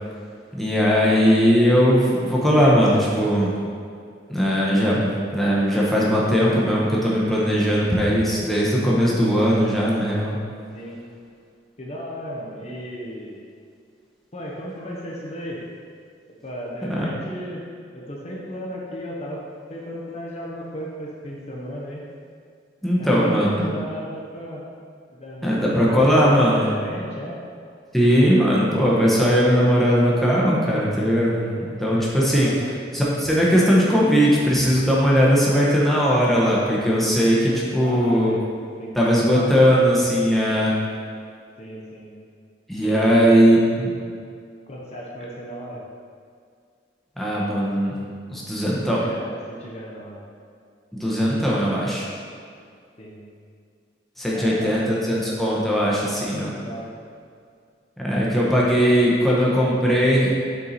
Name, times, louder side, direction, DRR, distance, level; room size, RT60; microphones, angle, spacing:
voice 1, 0.5-3.6 4.3-10.4 16.8-17.0 22.8-23.6 25.4-26.7 27.9-32.5 32.9-38.3 38.9-40.8 42.7-43.9 47.2-47.9 48.3-49.0 51.0-52.1 54.2-56.5 58.0-60.4, equal, ahead, -6 dB, 1.0 m, -19 dB
voice 2, 11.8-13.4 14.3-15.6 16.4-17.6 17.9-19.4 19.7-22.0 23.0-24.6 25.1-27.4 31.8-32.0 32.4-32.6 37.8-38.4 38.8-39.7 41.6-42.1 42.8-43.4 44.7-45.8 48.7-50.2 53.0-53.2 54.3-55.2 56.4-56.9, equal, 35° left, -4 dB, 0.9 m, -35 dB
6.9 x 4.6 x 4.2 m, 2.2 s
head